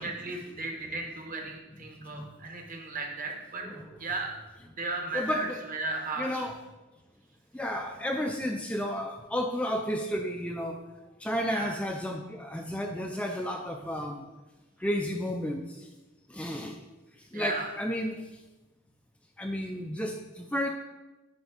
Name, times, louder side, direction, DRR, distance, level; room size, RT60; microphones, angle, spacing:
voice 1, 0.0-3.6 4.0-4.4 4.7-6.5 11.5-11.7 17.3-17.7, right 3 dB, 40° right, 2 dB, 1.2 m, -35 dB
voice 2, 5.1-5.6 6.2-6.5 7.5-10.8 11.2-14.3 14.8-15.9 16.3-16.8 17.3-18.2 19.4-20.7, equal, 5° left, 3 dB, 0.4 m, -32 dB
9.5 x 3.4 x 5.8 m, 1.1 s
head